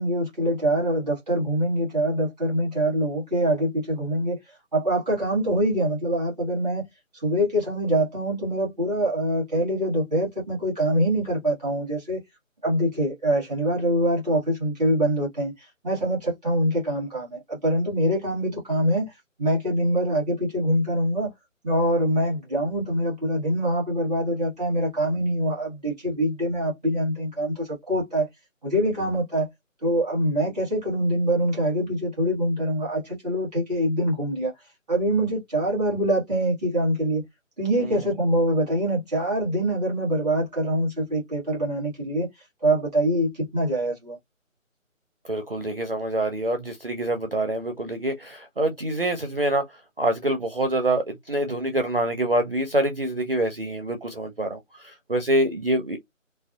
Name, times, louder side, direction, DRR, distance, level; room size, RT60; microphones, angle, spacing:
voice 1, 0.0-4.4 4.7-6.9 7.2-12.2 12.6-19.1 19.4-21.3 21.6-28.3 28.6-29.5 29.8-34.5 34.9-37.2 37.6-42.3 42.6-44.2, right 1 dB, 5° right, 1.0 m, -24 dB
voice 2, 45.3-49.6 50.0-56.0, right 1 dB, 45° right, 0.4 m, -26 dB
2.5 x 2.3 x 2.2 m
figure-of-eight pair, 155°, 40 cm